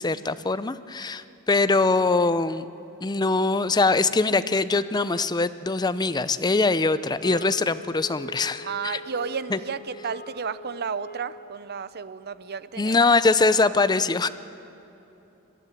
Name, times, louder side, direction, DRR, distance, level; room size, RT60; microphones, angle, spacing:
voice 1, 0.0-2.7 3.0-9.0 9.5-9.6 12.8-14.3, left 3 dB, 20° left, 13 dB, 0.5 m, -22 dB
sound 1, 7.2-11.6, left 1 dB, 45° left, 1.2 m, -42 dB
voice 2, 8.6-13.0, right 6 dB, 50° right, 15 dB, 0.6 m, -32 dB
22.0 x 13.0 x 9.4 m, 2.9 s
head